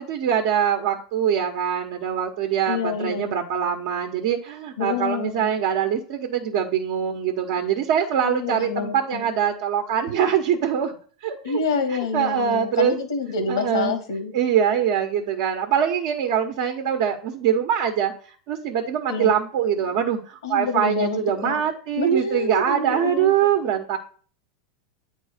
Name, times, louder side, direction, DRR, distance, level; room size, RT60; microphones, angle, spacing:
voice 1, 0.0-10.9 11.2-13.0 13.5-13.9 14.3-24.0, right 8 dB, 60° right, 3 dB, 1.1 m, -23 dB
voice 2, 2.7-3.3 4.8-5.5 8.2-9.2 11.4-14.3 19.1-19.3 20.4-21.6 22.0-23.4, left 3 dB, 80° left, 7 dB, 1.6 m, -27 dB
8.8 x 3.6 x 5.0 m, 0.42 s
hypercardioid pair, 105°, 3 cm